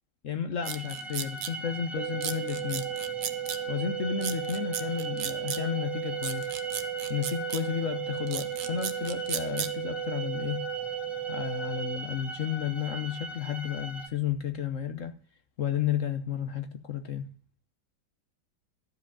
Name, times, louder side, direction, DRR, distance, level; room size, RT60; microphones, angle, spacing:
voice 1, 0.2-2.9 3.7-6.5 7.1-10.7 11.3-15.2 15.6-17.3, left 9 dB, 50° left, 1.0 m, -32 dB
sound 1, 0.6-14.1, right 1 dB, ahead, 0.9 m, -40 dB
sound 2, 0.7-1.5 2.2-3.6 4.2-5.6 6.2-7.6 8.3-9.7, right 9 dB, 60° right, 1.3 m, -35 dB
sound 3, 2.0-12.0, right 12 dB, 85° right, 1.6 m, -35 dB
13.5 x 5.0 x 8.6 m
omnidirectional pair, 2.1 m